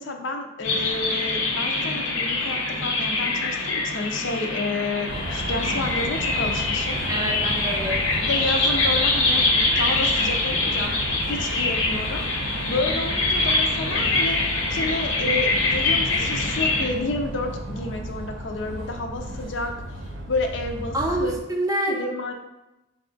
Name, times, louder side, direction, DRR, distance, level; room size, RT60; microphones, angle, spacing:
voice 1, 0.0-7.0 8.2-10.9 11.3-14.4 14.7-19.7 20.3-21.4 21.9-22.3, left 2 dB, 65° left, 4 dB, 0.5 m, -30 dB
sound 1, 0.6-16.9, left 3 dB, 90° left, 0.9 m, -24 dB
sound 2, 5.1-21.4, right 1 dB, 70° right, 0.6 m, -33 dB
voice 2, 7.1-8.1 20.9-22.0, right 1 dB, 15° right, 1 dB, 0.4 m, -26 dB
4.1 x 2.3 x 3.8 m, 0.97 s
head